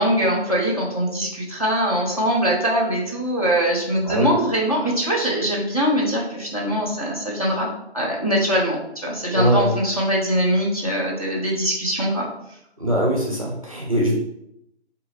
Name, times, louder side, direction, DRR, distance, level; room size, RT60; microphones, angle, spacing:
voice 1, 0.0-12.3, equal, 35° left, -5 dB, 0.6 m, -22 dB
voice 2, 9.3-9.7 12.8-14.1, right 1 dB, 30° right, -3 dB, 0.5 m, -21 dB
3.6 x 2.3 x 3.1 m, 0.79 s
figure-of-eight pair, 175°, 33 cm